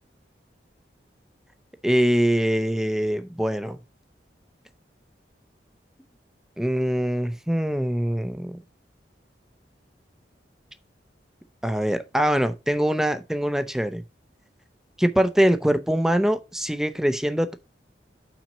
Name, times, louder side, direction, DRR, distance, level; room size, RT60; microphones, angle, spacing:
voice 1, 1.8-3.8 6.6-8.6 11.6-14.0 15.0-17.5, equal, 5° right, 0.6 m, -23 dB
6.0 x 4.3 x 5.3 m
head